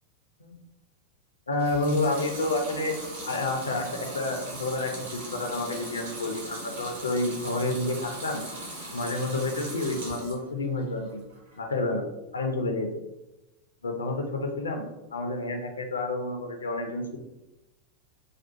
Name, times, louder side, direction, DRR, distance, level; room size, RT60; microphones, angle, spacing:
voice 1, 1.5-3.0 3.3-8.4 8.9-11.2 11.6-12.0 12.3-12.9 13.8-17.2, left 2 dB, 75° left, 3 dB, 0.4 m, -29 dB
Water tap faucet / Sink (filling or washing) / Liquid, 1.5-10.5 10.9-11.6, right 2 dB, 65° right, 1.1 m, -39 dB
2.5 x 2.3 x 2.6 m, 0.99 s
figure-of-eight pair, 90°, 0 cm